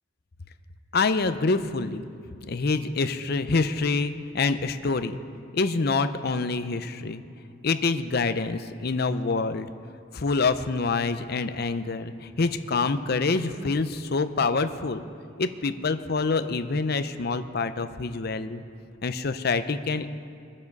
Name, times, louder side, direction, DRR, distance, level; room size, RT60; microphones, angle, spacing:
voice 1, 0.9-2.0 2.5-5.2 5.5-7.2 7.6-9.7 10.1-15.0 15.4-18.6 19.0-20.1, left 4 dB, 55° left, 10 dB, 0.6 m, -26 dB
22.5 x 7.5 x 5.4 m, 2.6 s
head